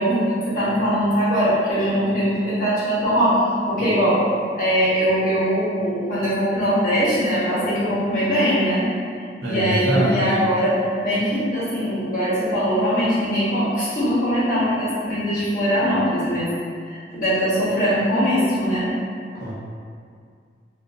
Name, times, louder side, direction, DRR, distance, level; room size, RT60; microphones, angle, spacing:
voice 1, 0.0-4.2 4.6-8.9 9.4-16.5 16.9-18.9, equal, 50° left, -10 dB, 0.9 m, -21 dB
voice 2, 9.4-10.4 19.3-19.5, equal, 65° right, -9 dB, 0.7 m, -23 dB
2.5 x 2.4 x 2.6 m, 2.2 s
head